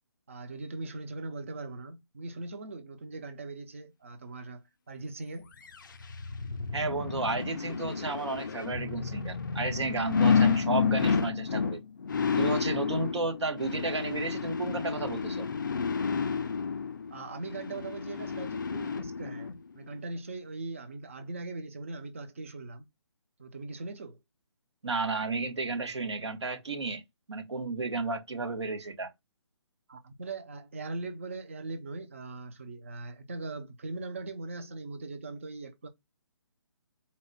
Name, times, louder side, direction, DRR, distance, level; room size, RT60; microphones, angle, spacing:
voice 1, 0.3-5.5 17.1-22.9 23.4-24.2 29.9-35.9, right 3 dB, 25° right, 0.5 m, -40 dB
sound 1, 5.7-19.6 20.0-20.1, left 5 dB, 45° left, 0.4 m, -30 dB
voice 2, 6.7-11.8 12.4-15.5 24.8-27.0 27.3-29.1, right 3 dB, 70° right, 1.2 m, -32 dB
4.1 x 2.1 x 3.9 m
hypercardioid pair, 175°, 15 cm